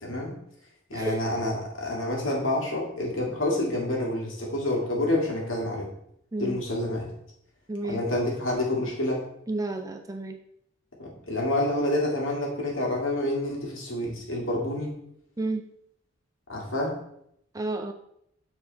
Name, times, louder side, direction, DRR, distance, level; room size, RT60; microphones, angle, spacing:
voice 1, 0.0-0.3 0.9-5.9 6.4-7.1 7.9-9.2 11.0-14.9 16.5-17.0, left 1 dB, 75° left, -2 dB, 2.0 m, -28 dB
voice 2, 6.3-6.6 7.7-8.0 9.5-10.4 15.4-15.6 17.5-17.9, right 2 dB, 15° right, 5 dB, 0.4 m, -31 dB
7.4 x 4.4 x 4.0 m, 0.75 s
head